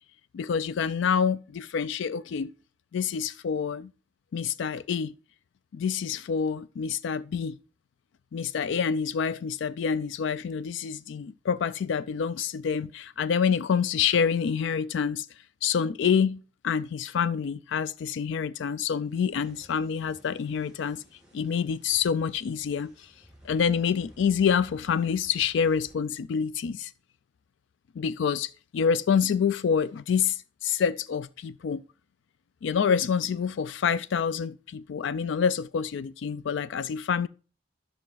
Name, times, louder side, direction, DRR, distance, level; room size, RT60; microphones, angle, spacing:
voice 1, 0.3-2.5 2.9-3.9 4.3-5.1 5.7-7.6 8.3-15.3 15.6-21.0 21.3-23.1 23.4-26.9 28.0-31.8 32.6-37.3, left 7 dB, 70° left, 0.4 m, -27 dB
sound 1, 19.0-25.9, equal, 5° right, 5.3 m, -55 dB
13.0 x 6.5 x 3.9 m
head